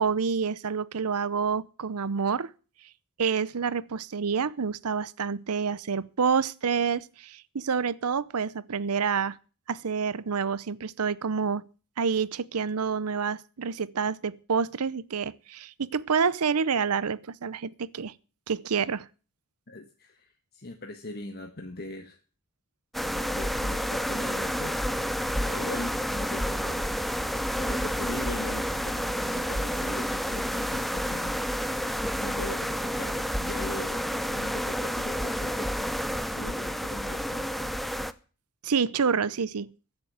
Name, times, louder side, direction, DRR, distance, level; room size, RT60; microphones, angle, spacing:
voice 1, 0.0-2.5 3.2-9.4 9.7-11.7 12.0-18.1 18.5-19.1 38.6-39.7, right 6 dB, 85° right, 0.7 m, -28 dB
voice 2, 19.7-22.2 23.0-25.0 25.4-26.9 27.3-31.5 31.7-37.7, left 2 dB, 45° left, 1.4 m, -41 dB
sound 1, 22.9-38.1, equal, ahead, 0.6 m, -30 dB
15.5 x 6.9 x 9.2 m
head